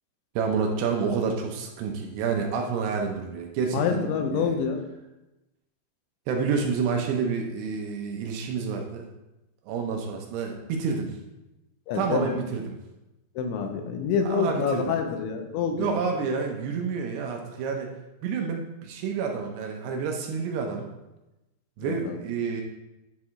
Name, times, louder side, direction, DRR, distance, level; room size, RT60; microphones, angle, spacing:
voice 1, 0.4-4.6 6.3-9.1 9.7-11.2 11.9-12.8 14.2-15.0 15.8-17.9 18.2-20.9 21.8-22.6, right 5 dB, 80° right, 2 dB, 2.7 m, -29 dB
voice 2, 3.7-4.8 11.9-12.4 13.4-16.0 21.9-22.2, left 6 dB, 85° left, 5 dB, 3.2 m, -27 dB
10.5 x 4.7 x 3.6 m, 0.97 s
omnidirectional pair, 5.2 m